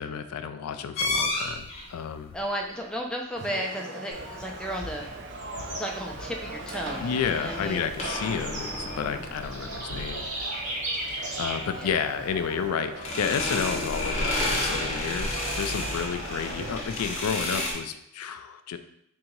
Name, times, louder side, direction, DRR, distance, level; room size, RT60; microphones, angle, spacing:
voice 1, 0.0-2.4 7.0-10.3 11.4-18.8, left 7 dB, 80° left, 10 dB, 0.3 m, -31 dB
sound 1, 1.0-1.9 6.5-10.3 12.9-17.7, left 1 dB, 30° left, 0.8 m, -31 dB
voice 2, 2.3-5.2 5.7-7.9 11.7-12.0, equal, 5° left, 0 dB, 0.4 m, -34 dB
sound 2, 3.3-16.8, right 2 dB, 50° right, 0.5 m, -40 dB
Bird / Insect, 4.1-12.7, right 1 dB, 30° right, 1.0 m, -38 dB
3.7 x 2.7 x 4.4 m, 0.75 s
head